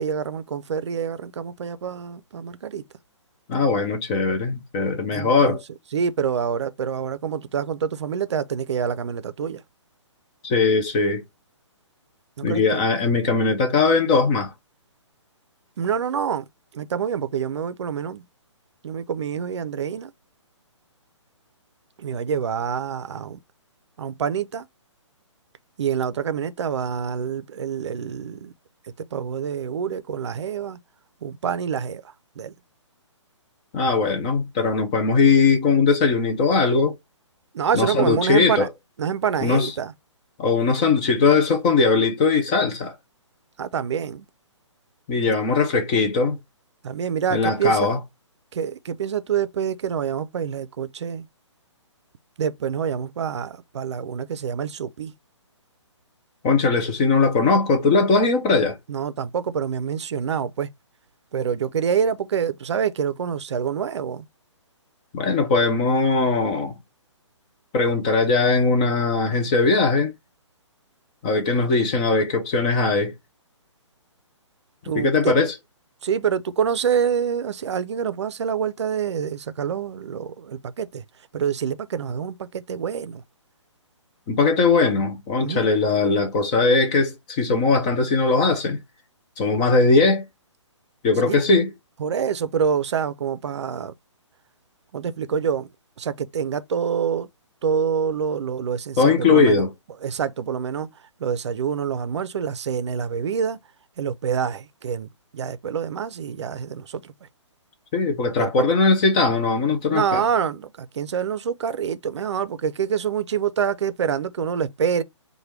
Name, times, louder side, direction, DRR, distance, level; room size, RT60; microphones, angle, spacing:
voice 1, 0.0-2.8 5.1-5.6 5.9-9.6 12.4-12.6 15.8-16.4 16.7-18.2 18.8-20.1 22.0-23.4 24.0-24.7 25.8-28.5 29.0-30.8 31.2-32.5 37.5-38.7 39.0-39.9 43.6-44.3 46.8-48.0 48.5-51.3 52.4-55.1 58.9-60.7 61.3-64.2 74.8-75.4 76.0-81.0 81.3-83.2 85.4-85.7 91.3-91.4 92.0-93.9 94.9-95.7 96.0-97.3 97.6-99.6 100.0-100.9 101.2-103.6 104.0-107.1 108.4-108.7 109.9-115.0, right 7 dB, 65° right, 0.5 m, -26 dB
voice 2, 3.5-5.6 10.4-11.2 12.4-14.5 33.7-37.0 37.7-38.7 39.4-39.7 40.4-42.9 45.1-46.4 47.3-48.0 56.4-58.8 65.1-66.8 67.7-70.1 71.2-73.1 75.0-75.6 84.3-88.8 89.4-90.3 91.0-91.7 99.0-99.7 107.9-110.2, left 4 dB, 15° left, 0.3 m, -20 dB
3.3 x 2.2 x 4.3 m
hypercardioid pair, 155°, 16 cm